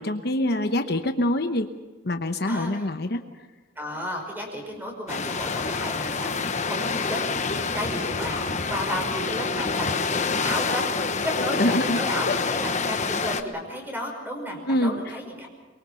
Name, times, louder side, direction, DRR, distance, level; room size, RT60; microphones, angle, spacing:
voice 1, 0.0-1.7 2.0-3.2 11.5-12.0 12.3-12.4 14.7-15.0, left 1 dB, 55° left, 7 dB, 1.0 m, -25 dB
voice 2, 2.5-2.9 3.8-7.2 7.7-15.5, equal, 10° right, 2 dB, 5.6 m, -33 dB
sound 1, 5.1-13.4, left 4 dB, 40° left, 1.1 m, -27 dB
23.5 x 23.5 x 5.8 m, 1.2 s
head